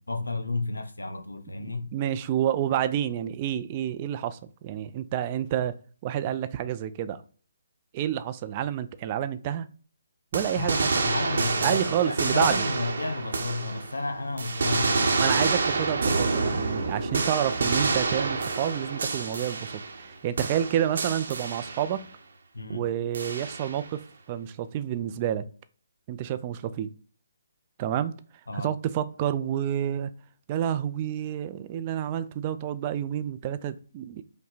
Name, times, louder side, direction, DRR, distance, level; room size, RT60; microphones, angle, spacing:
voice 1, 0.0-1.9 10.5-10.7 11.0-15.3 22.5-22.9 28.5-28.7, left 2 dB, 85° left, 0.7 m, -32 dB
voice 2, 1.6-5.7 6.0-7.2 7.9-9.7 10.3-10.9 11.6-12.6 15.2-22.1 22.7-25.5 26.1-26.9 27.8-28.1 28.5-30.1 30.5-34.2, right 10 dB, 30° right, 0.4 m, -29 dB
sound 1, 10.3-14.0 14.4-20.1 20.4-22.0 23.1-23.9, right 3 dB, 60° right, 0.9 m, -28 dB
5.5 x 2.2 x 4.0 m
figure-of-eight pair, 140°, 0 cm